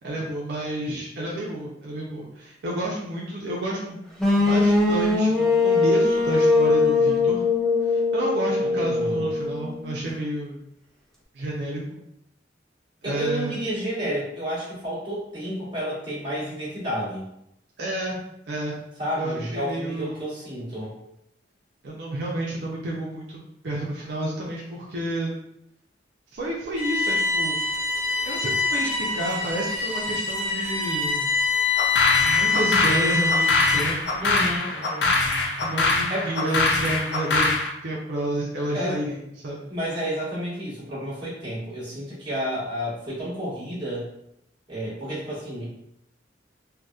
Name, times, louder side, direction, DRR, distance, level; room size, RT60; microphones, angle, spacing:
voice 1, 0.0-4.0 4.4-7.5 7.8-10.6 11.3-11.8 13.0-13.6 17.8-18.8 19.2-20.3 21.8-25.4 26.3-27.6 28.3-31.3 32.2-34.4 35.6-39.7, right 1 dB, 65° right, -4 dB, 0.4 m, -30 dB
sound 1, 4.2-10.1, left 3 dB, 5° left, 0.4 m, -21 dB
voice 2, 8.6-9.3 13.0-17.3 19.0-20.9 34.2-35.1 36.1-36.3 38.7-39.1 39.7-44.1 44.7-45.7, equal, 25° right, -9 dB, 1.1 m, -31 dB
Bowed string instrument, 26.8-34.0, left 4 dB, 90° left, 1.0 m, -24 dB
sound 2, 31.8-37.7, left 3 dB, 65° left, 0.4 m, -23 dB
2.7 x 2.1 x 2.3 m, 0.80 s
head